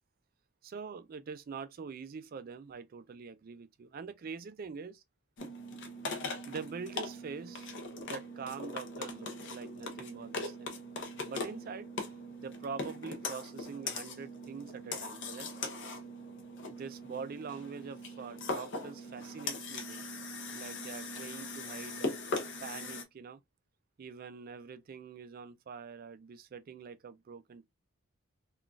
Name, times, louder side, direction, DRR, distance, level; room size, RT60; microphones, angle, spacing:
voice 1, 0.6-5.0 6.5-7.7 8.1-10.7 11.2-11.9 12.4-15.5 16.7-20.0 20.5-22.1 22.6-23.4 24.0-27.7, right 5 dB, 40° right, 0.3 m, -44 dB
sound 1, 5.4-23.0, left 2 dB, 55° left, 0.7 m, -40 dB
3.8 x 2.3 x 2.3 m
head